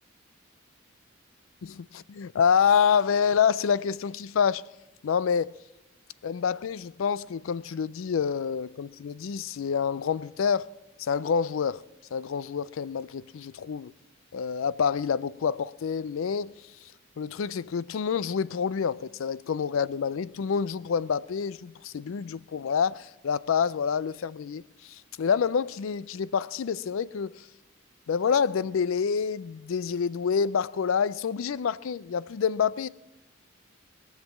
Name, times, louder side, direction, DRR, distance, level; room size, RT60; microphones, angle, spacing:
voice 1, 1.6-4.6 5.0-5.5 6.2-10.7 11.0-11.8 12.1-13.9 14.3-16.6 17.2-27.5 28.1-32.9, left 6 dB, 65° left, 0.4 m, -27 dB
21.5 x 7.4 x 7.2 m
head